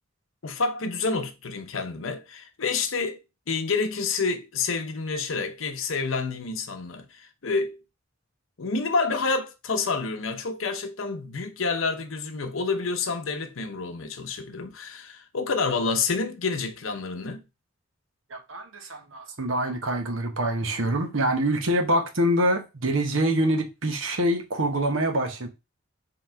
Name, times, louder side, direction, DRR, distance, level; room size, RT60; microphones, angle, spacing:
voice 1, 0.4-3.2 3.5-7.8 8.6-17.4, left 4 dB, 90° left, 0.8 m, -28 dB
voice 2, 18.3-25.5, right 1 dB, 75° right, 0.9 m, -25 dB
3.8 x 3.0 x 4.4 m
head